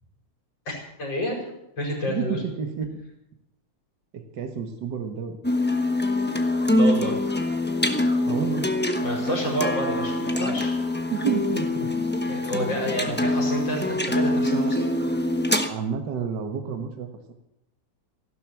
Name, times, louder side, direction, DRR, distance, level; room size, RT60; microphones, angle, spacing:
voice 1, 0.7-1.5 1.8-2.4 6.7-7.2 9.0-10.7 12.3-14.9, equal, 80° left, 0 dB, 5.7 m, -29 dB
voice 2, 2.1-3.0 4.1-5.4 8.2-8.7 11.1-11.9 13.1-13.2 15.7-17.3, right 7 dB, 65° right, 5 dB, 2.1 m, -30 dB
sound 1, 5.4-15.7, left 1 dB, 10° left, 0.7 m, -24 dB
15.5 x 12.0 x 7.7 m, 0.82 s
omnidirectional pair, 2.0 m